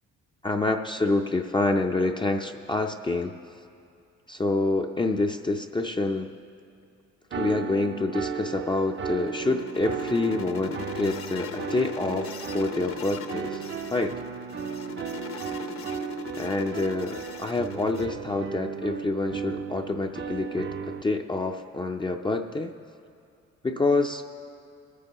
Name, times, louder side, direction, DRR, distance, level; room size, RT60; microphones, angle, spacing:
voice 1, 0.4-3.3 4.3-6.3 7.4-13.6 13.9-14.2 16.4-22.7 23.6-24.2, left 2 dB, 15° left, 3 dB, 0.4 m, -27 dB
sound 1, 7.3-21.0, right 7 dB, 40° right, 0.5 m, -35 dB
sound 2, 8.6-18.1, left 7 dB, 50° left, 0.7 m, -40 dB
23.0 x 9.6 x 3.0 m, 2.5 s
cardioid pair, 90°, 30 cm